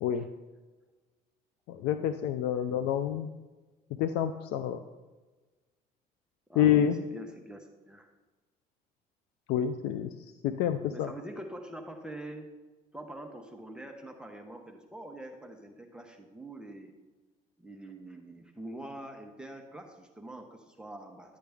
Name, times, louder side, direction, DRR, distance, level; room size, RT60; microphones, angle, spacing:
voice 1, 1.7-3.3 4.0-4.8 6.6-7.0 9.5-10.1 10.4-11.1, left 10 dB, 85° left, 9 dB, 0.5 m, -27 dB
voice 2, 6.5-8.1 10.9-12.5 12.9-16.9 17.6-21.4, right 1 dB, 5° right, 2 dB, 0.9 m, -45 dB
11.5 x 8.5 x 3.5 m, 1.2 s
cardioid pair, 110°, 17 cm